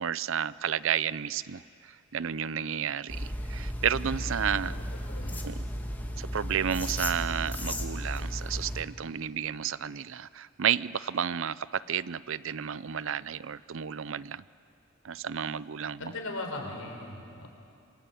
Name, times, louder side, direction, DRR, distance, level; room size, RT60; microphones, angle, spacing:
voice 1, 0.0-4.7 5.4-5.6 6.2-14.4 15.0-16.1, right 8 dB, 65° right, 18 dB, 0.6 m, -32 dB
sound 1, 3.1-8.8, equal, 10° left, 2.2 m, -34 dB
voice 2, 4.4-4.8 5.1-5.5 16.0-17.5, left 2 dB, 80° left, 2 dB, 5.1 m, -39 dB
27.5 x 25.0 x 8.6 m, 2.5 s
head